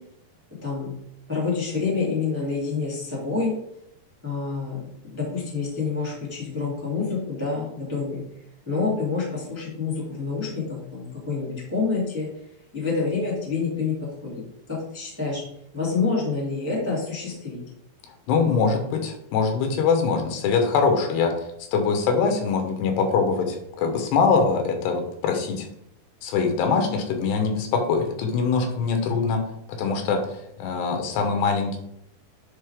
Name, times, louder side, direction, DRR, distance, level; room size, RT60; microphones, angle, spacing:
voice 1, 1.3-3.5 4.2-8.2 8.7-12.3 12.7-13.9 14.2-14.4 14.7-15.4 15.7-17.6, left 4 dB, 5° right, -4 dB, 1.9 m, -27 dB
voice 2, 18.3-21.3 21.7-25.7 26.2-29.4 29.7-31.8, left 5 dB, 85° left, 4 dB, 3.2 m, -23 dB
9.9 x 4.2 x 3.6 m, 0.74 s
omnidirectional pair, 4.8 m